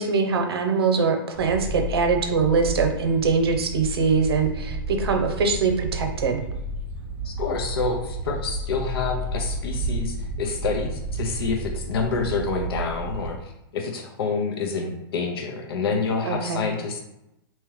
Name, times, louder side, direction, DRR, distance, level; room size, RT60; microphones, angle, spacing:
voice 1, 0.0-6.4 16.2-16.6, right 4 dB, 90° right, 5 dB, 0.7 m, -23 dB
sound 1, 1.3-13.4, right 2 dB, 10° right, 0.9 m, -31 dB
voice 2, 7.2-17.0, left 4 dB, 80° left, 2 dB, 0.7 m, -28 dB
3.5 x 2.8 x 3.1 m, 0.88 s
hypercardioid pair, 150°, 13 cm